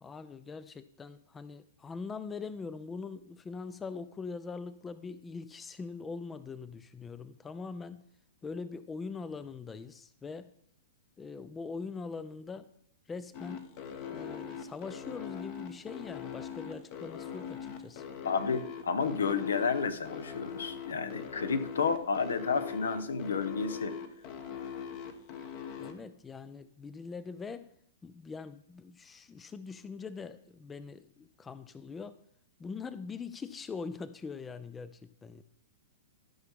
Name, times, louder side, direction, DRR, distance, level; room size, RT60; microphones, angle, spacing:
voice 1, 0.0-8.0 8.4-10.5 11.2-12.7 13.1-13.6 14.1-18.0 25.8-27.7 28.0-32.2 32.6-35.4, left 4 dB, 15° left, 14 dB, 0.4 m, -42 dB
sound 1, 13.3-25.9, left 7 dB, 40° left, 1.1 m, -41 dB
voice 2, 18.2-23.9, left 5 dB, 75° left, 12 dB, 0.9 m, -31 dB
12.5 x 5.7 x 3.6 m, 0.68 s
hypercardioid pair, 110°, 0 cm